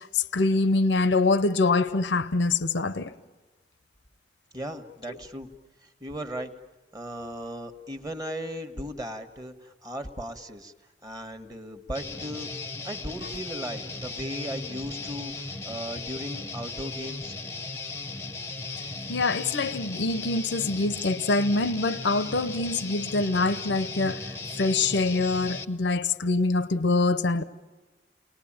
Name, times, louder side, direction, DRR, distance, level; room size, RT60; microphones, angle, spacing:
voice 1, 0.0-3.1 19.1-24.2 24.6-27.4, left 3 dB, 85° left, 0.8 m, -25 dB
voice 2, 4.5-5.5 6.0-6.5 6.9-10.7 11.0-12.5 12.8-17.3, equal, 20° right, 1.3 m, -37 dB
Guitar, 11.9-25.6, left 3 dB, 15° left, 0.7 m, -37 dB
29.5 x 20.5 x 8.8 m
head